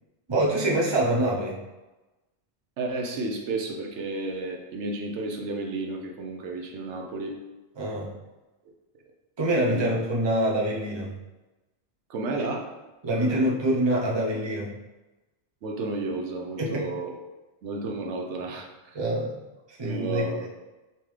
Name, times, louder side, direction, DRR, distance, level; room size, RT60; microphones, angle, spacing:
voice 1, 0.3-1.6 7.8-8.1 9.4-11.1 13.0-14.7 16.6-16.9 18.9-19.3 19.7-20.5, right 1 dB, 30° right, -3 dB, 0.7 m, -25 dB
voice 2, 2.8-7.4 9.7-9.9 12.1-12.7 13.1-13.5 15.6-17.2 17.6-19.0 19.8-20.5, right 2 dB, 90° right, 2 dB, 1.0 m, -32 dB
4.4 x 3.6 x 3.2 m, 1.1 s
omnidirectional pair, 1.1 m